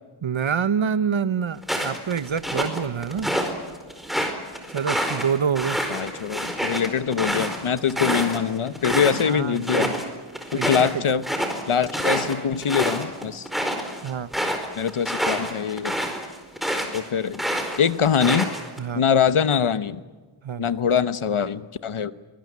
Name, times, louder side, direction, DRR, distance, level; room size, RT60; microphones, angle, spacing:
voice 1, 0.2-3.3 4.7-5.8 9.2-10.1 10.5-10.9 14.0-14.3 18.8-19.0 20.4-20.6, right 7 dB, 70° right, 15 dB, 1.0 m, -26 dB
sound 1, 1.6-3.5 3.9-9.2 9.5-10.0 10.3-17.0 17.3-18.8, equal, ahead, 4.6 m, -27 dB
voice 2, 5.9-10.0 10.5-11.2 11.7-13.5 14.8-16.1 16.9-17.4 17.8-18.5 18.9-20.0 20.6-22.1, left 7 dB, 75° left, 14 dB, 1.1 m, -23 dB
23.5 x 20.5 x 9.5 m, 1.3 s
wide cardioid pair, 75°, 50 cm